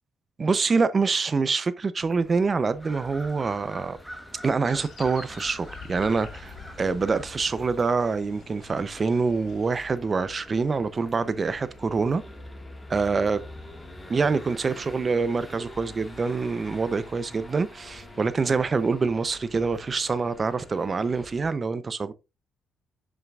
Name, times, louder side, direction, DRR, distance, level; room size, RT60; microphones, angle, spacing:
voice 1, 0.4-4.0 4.4-12.2 12.9-13.4 14.1-22.1, right 4 dB, 35° right, 0.6 m, -25 dB
sound 1, 2.0-21.5, left 1 dB, 15° left, 1.8 m, -46 dB
sound 2, 2.8-7.8, equal, ahead, 1.2 m, -44 dB
sound 3, 4.6-9.8, left 8 dB, 70° left, 1.0 m, -47 dB
7.3 x 5.8 x 2.4 m
cardioid pair, 90°, 0 cm